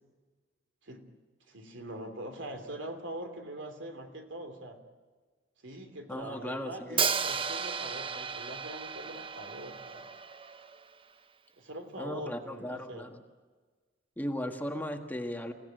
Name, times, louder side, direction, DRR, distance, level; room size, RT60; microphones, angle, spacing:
voice 1, 1.5-4.8 5.6-10.1 11.6-13.0, right 1 dB, 70° right, 6 dB, 3.1 m, -43 dB
voice 2, 6.1-7.0 12.0-13.2 14.2-15.5, left 1 dB, 10° left, 4 dB, 1.6 m, -37 dB
Hi-hat, 7.0-10.9, right 6 dB, 30° right, 0.7 m, -34 dB
29.0 x 16.5 x 9.1 m, 1.4 s
head